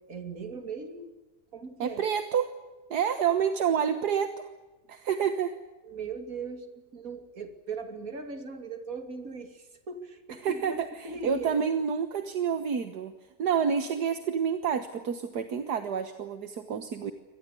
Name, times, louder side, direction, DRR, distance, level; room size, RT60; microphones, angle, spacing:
voice 1, 0.1-1.1 1.5-2.0 5.8-6.7 6.9-11.6, right 4 dB, 55° right, 7 dB, 3.0 m, -39 dB
voice 2, 1.8-2.5 2.9-4.5 4.9-5.5 10.4-13.1 13.4-17.1, right 7 dB, 75° right, 9 dB, 1.8 m, -28 dB
25.0 x 19.5 x 8.4 m, 1.1 s
omnidirectional pair, 1.8 m